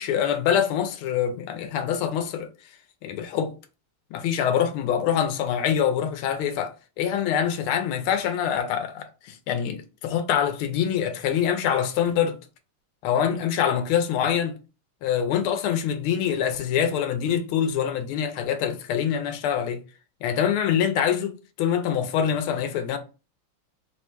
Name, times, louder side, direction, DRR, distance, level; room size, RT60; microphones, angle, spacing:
voice 1, 0.0-2.5 3.0-3.5 4.1-12.4 13.0-14.5 15.0-19.8 20.2-23.0, left 8 dB, 85° left, 1.5 m, -25 dB
4.0 x 2.1 x 4.4 m
omnidirectional pair, 2.3 m